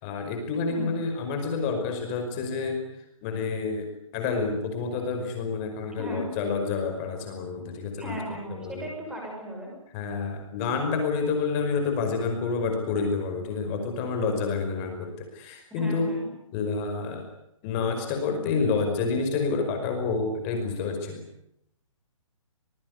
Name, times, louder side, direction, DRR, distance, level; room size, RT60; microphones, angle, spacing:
voice 1, 0.0-2.8 3.2-8.1 8.5-8.9 9.9-16.1 16.5-17.3 17.6-21.2, left 4 dB, 20° left, 4 dB, 5.3 m, -28 dB
voice 2, 8.0-9.7 15.7-16.3, equal, 5° right, -1 dB, 6.3 m, -36 dB
28.0 x 20.0 x 9.7 m, 0.77 s
hypercardioid pair, 170°, 17 cm